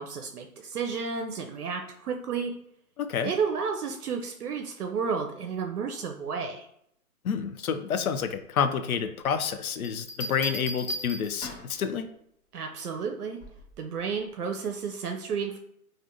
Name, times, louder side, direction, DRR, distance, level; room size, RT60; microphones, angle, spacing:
voice 1, 0.0-2.6 3.2-6.7 12.5-13.4 13.8-15.6, right 5 dB, 75° right, 4 dB, 0.6 m, -32 dB
voice 2, 3.0-3.3 7.2-12.1, left 7 dB, 65° left, 9 dB, 0.5 m, -29 dB
Bell, 9.8-11.8 13.4-13.7, equal, 40° left, 1.4 m, -37 dB
3.4 x 2.5 x 2.5 m, 0.73 s
hypercardioid pair, 155°, 46 cm